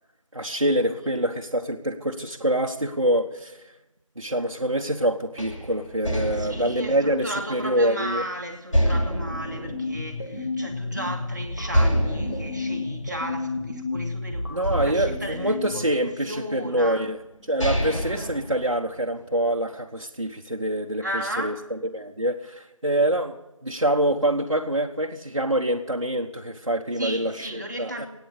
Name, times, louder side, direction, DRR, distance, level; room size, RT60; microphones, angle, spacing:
voice 1, 0.3-3.6 4.2-8.2 14.5-17.2 17.5-21.0 21.4-23.3 23.6-28.1, right 1 dB, 60° right, 1.3 m, -25 dB
sound 1, 5.4-8.2 8.7-10.7 11.0-11.1 11.7-14.1 14.6-16.2 17.0-17.1 17.4-19.2, equal, 70° left, 7.2 m, -28 dB
voice 2, 6.3-17.1 17.9-18.3 21.0-21.7 26.9-28.1, equal, 35° right, 1.9 m, -35 dB
sound 2, 8.9-16.0, left 3 dB, 40° left, 2.1 m, -32 dB
23.5 x 9.4 x 6.6 m
figure-of-eight pair, 175°, 17 cm